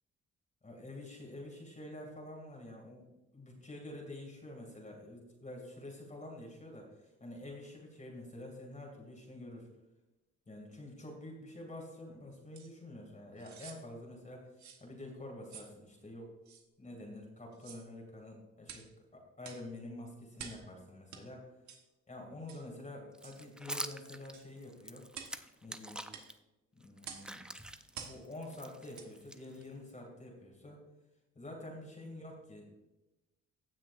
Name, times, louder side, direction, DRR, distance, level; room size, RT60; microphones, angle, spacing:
voice 1, 0.6-9.7 10.5-16.3 16.8-18.9 19.1-21.4 22.1-25.0 25.6-26.1 26.7-27.5 28.0-30.8 31.4-32.7, left 1 dB, 25° left, -1 dB, 2.5 m, -48 dB
sound 1, 12.5-12.7 13.4-13.8 14.6-14.8 15.5-15.7 16.5-16.6 17.5-17.9 18.6-18.9 19.4-19.7 20.4-20.7 21.1-21.2 21.7-21.8 22.5-22.7 23.2-23.4 24.3-24.5 25.1-25.4 26.1-26.3 27.0-27.3 27.9-28.2 28.9-29.1 29.6-29.7, right 7 dB, 70° right, 1.4 m, -49 dB
sound 2, 23.1-26.3 26.8-29.9, right 1 dB, 5° right, 0.5 m, -46 dB
16.0 x 6.2 x 2.6 m, 1.0 s
cardioid pair, 90°, 30 cm